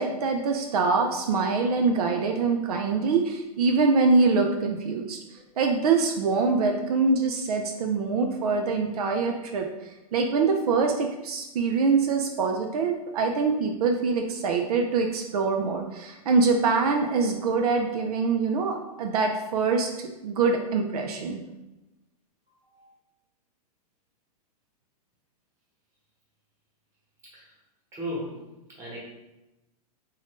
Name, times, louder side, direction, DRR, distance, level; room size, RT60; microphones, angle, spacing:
voice 1, 0.0-5.2 5.6-9.7 10.1-21.4, right 4 dB, 75° right, 3 dB, 0.5 m, -24 dB
voice 2, 22.5-22.9 27.2-27.5 27.9-29.0, equal, 15° right, -5 dB, 1.2 m, -38 dB
3.7 x 2.6 x 3.6 m, 0.97 s
hypercardioid pair, 150°, 20 cm